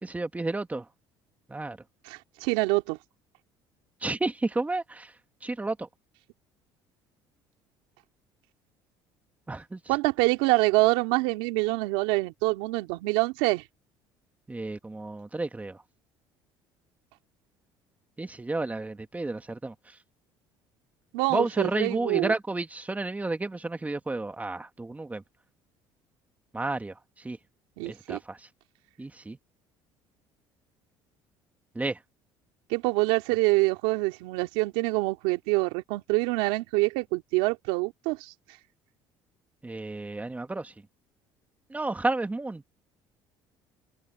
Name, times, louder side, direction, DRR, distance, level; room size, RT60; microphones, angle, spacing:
voice 1, 0.0-0.9 1.5-1.8 4.0-5.1 5.4-5.9 9.5-9.9 14.5-15.8 18.2-20.0 21.3-25.2 26.5-27.4 27.9-28.5 29.0-29.4 31.7-32.0 39.6-40.7 41.7-42.6, right 2 dB, 15° right, 2.1 m, -31 dB
voice 2, 2.0-3.0 9.9-13.6 21.1-22.3 27.8-28.2 32.7-38.3, right 23 dB, 85° right, 2.7 m, -26 dB
supercardioid pair, 80°, 11 cm